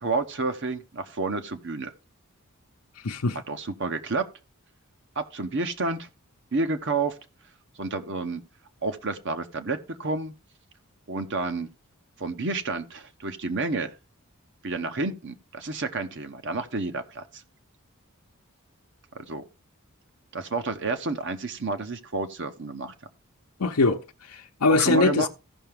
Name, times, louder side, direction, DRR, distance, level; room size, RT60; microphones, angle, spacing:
voice 1, 0.0-1.9 3.5-4.3 5.2-6.1 6.5-7.2 7.8-8.4 8.8-10.3 11.1-11.7 12.2-13.9 14.6-17.4 19.1-19.4 20.3-22.9 24.7-25.3, right 3 dB, 55° right, 1.0 m, -30 dB
voice 2, 3.0-3.4 23.6-25.3, left 3 dB, 85° left, 0.8 m, -23 dB
15.5 x 5.8 x 3.5 m
head